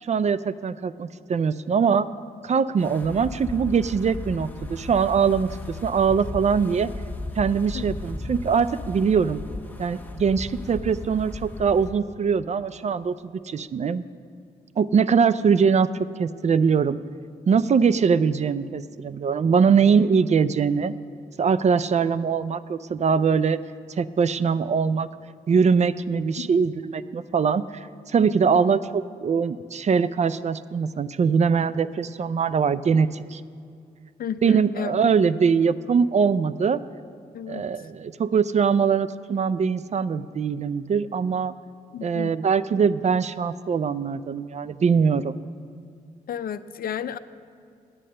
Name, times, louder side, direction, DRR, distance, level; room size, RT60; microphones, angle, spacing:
voice 1, 0.0-2.1 2.4-6.9 7.4-9.4 9.8-14.0 14.8-17.0 17.5-20.9 21.4-23.6 24.0-25.1 25.5-33.4 34.4-36.8 37.5-41.5 42.0-45.4, right 6 dB, 45° right, 15 dB, 0.4 m, -22 dB
Wind, 2.8-11.9, left 2 dB, 10° left, 1.2 m, -36 dB
voice 2, 28.2-28.6 34.2-34.9 37.3-37.7 41.9-42.3 46.3-47.2, left 8 dB, 60° left, 13 dB, 0.4 m, -32 dB
8.8 x 8.4 x 6.5 m, 2.3 s
supercardioid pair, 45°, 17 cm